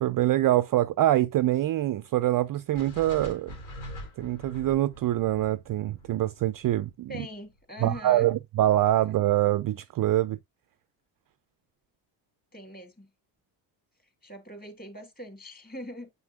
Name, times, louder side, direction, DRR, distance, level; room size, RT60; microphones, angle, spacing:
voice 1, 0.0-3.5 4.2-7.1 7.8-10.4, right 14 dB, 45° right, 0.4 m, -25 dB
sound 1, 2.7-6.9, equal, 75° left, 4.6 m, -43 dB
voice 2, 7.1-8.3 12.5-13.1 14.2-16.1, left 1 dB, 20° left, 2.8 m, -42 dB
7.3 x 6.0 x 2.3 m
supercardioid pair, 65°, 50 cm